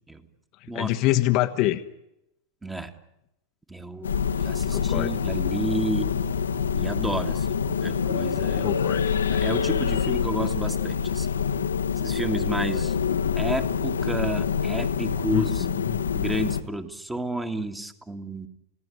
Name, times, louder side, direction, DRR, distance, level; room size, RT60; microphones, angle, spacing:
voice 1, 0.7-1.8 4.7-5.2 8.6-9.2 15.3-16.0, left 15 dB, 40° left, 6 dB, 1.3 m, -25 dB
voice 2, 2.6-2.9 3.7-6.1 6.7-8.8 9.3-11.3 12.0-15.7 16.1-18.5, right 1 dB, 10° right, 7 dB, 2.2 m, -31 dB
sound 1, 4.0-16.6, left 7 dB, 70° left, 1.5 m, -26 dB
29.0 x 17.5 x 9.8 m, 0.87 s
figure-of-eight pair, 90°, 0 cm